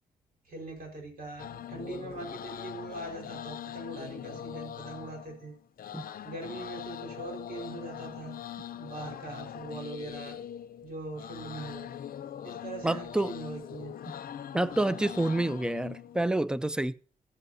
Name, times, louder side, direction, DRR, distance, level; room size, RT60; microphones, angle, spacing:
voice 1, 0.5-5.6 6.2-10.4 10.8-11.9 12.4-14.0, right 2 dB, 70° right, 4.4 m, -41 dB
sound 1, 1.4-16.2, left 10 dB, 70° left, 0.5 m, -42 dB
voice 2, 12.8-13.4 14.5-16.9, right 1 dB, 5° right, 0.5 m, -28 dB
14.5 x 8.2 x 2.7 m
cardioid pair, 95°, 16 cm